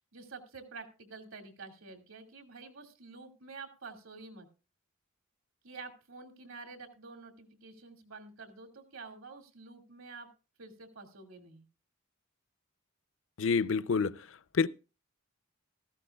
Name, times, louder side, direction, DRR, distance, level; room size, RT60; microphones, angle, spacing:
voice 1, 0.0-4.5 5.6-10.3 10.6-11.6, right 4 dB, 85° right, 2.3 m, -49 dB
voice 2, 13.4-14.1 14.5-14.7, left 5 dB, 70° left, 0.5 m, -27 dB
15.5 x 14.0 x 2.3 m
head